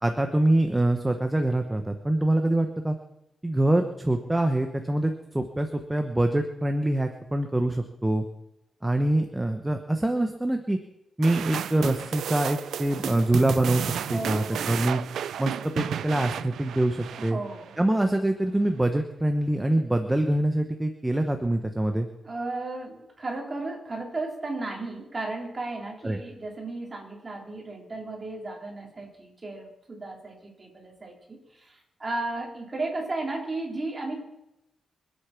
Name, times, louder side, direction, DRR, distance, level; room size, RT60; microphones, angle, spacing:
voice 1, 0.0-3.0 3.4-8.2 8.8-10.8 11.2-15.0 15.4-17.4 17.8-22.1 26.0-26.2, right 1 dB, 10° right, 5 dB, 1.0 m, -25 dB
sound 1, 11.2-17.8, right 9 dB, 85° right, 0.4 m, -33 dB
voice 2, 14.1-14.8 17.2-17.7 22.2-34.3, right 2 dB, 25° right, 0 dB, 3.5 m, -34 dB
24.5 x 8.3 x 5.9 m, 0.88 s
wide cardioid pair, 150°, 0 cm